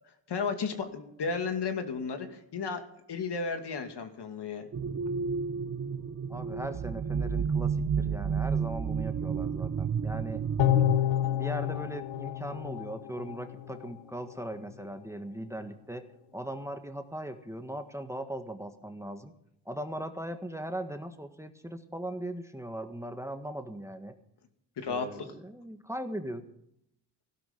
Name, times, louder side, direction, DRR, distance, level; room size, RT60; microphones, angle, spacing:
voice 1, 0.3-2.8 3.1-4.7 24.8-25.1, left 5 dB, 60° left, 6 dB, 2.4 m, -33 dB
sound 1, 4.7-11.0, right 6 dB, 30° right, 0.7 m, -31 dB
voice 2, 6.3-10.4 11.3-16.0 16.3-19.3 19.6-24.1 24.9-26.4, right 1 dB, 5° right, 7 dB, 1.6 m, -39 dB
sound 2, 10.6-13.9 14.3-14.4, left 12 dB, 75° left, 1.1 m, -29 dB
16.0 x 12.5 x 5.3 m, 0.73 s
cardioid pair, 70°, 47 cm